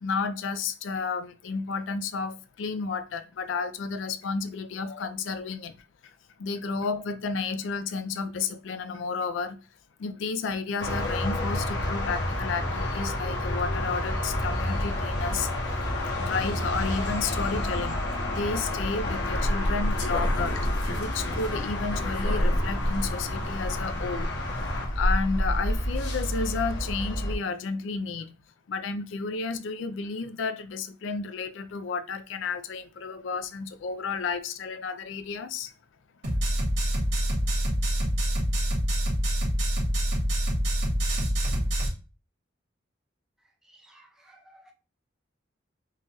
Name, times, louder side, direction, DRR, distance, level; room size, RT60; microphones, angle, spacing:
voice 1, 0.0-5.8 6.0-9.6 10.0-15.8 16.1-18.0 18.3-20.7 21.0-24.3 24.9-28.3 28.7-35.7, left 4 dB, 85° left, 0.4 m, -32 dB
sound 1, 10.8-27.3, left 1 dB, 65° left, 1.0 m, -28 dB
sound 2, 36.2-41.9, equal, 85° right, 2.1 m, -26 dB
voice 2, 43.7-44.7, right 1 dB, 5° right, 0.4 m, -56 dB
4.7 x 2.3 x 2.9 m
head